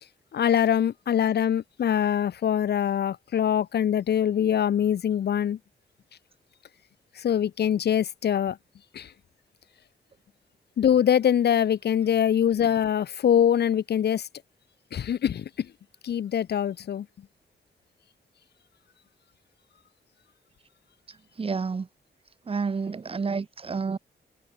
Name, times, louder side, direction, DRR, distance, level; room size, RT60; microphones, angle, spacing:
voice 1, 0.3-5.6 7.2-8.6 8.9-9.1 10.8-14.3 14.9-15.7 16.0-17.1, left 9 dB, 65° left, 0.8 m, -23 dB
voice 2, 21.1-21.9 22.5-24.0, right 5 dB, 30° right, 1.5 m, -30 dB
wide cardioid pair, 175°, 19 cm